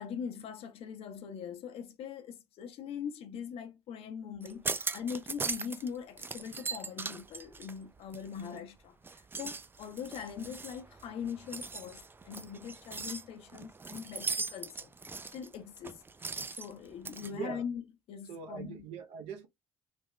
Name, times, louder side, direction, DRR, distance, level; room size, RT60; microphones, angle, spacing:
voice 1, 0.0-14.9 15.3-16.0 16.6-18.9, left 7 dB, 65° left, 0.7 m, -42 dB
sound 1, 4.4-5.9 6.2-8.6 9.0-17.3, right 4 dB, 20° right, 0.4 m, -39 dB
voice 2, 17.2-17.6 18.3-19.5, right 6 dB, 70° right, 0.8 m, -41 dB
3.4 x 2.2 x 3.1 m
hypercardioid pair, 60°, 11 cm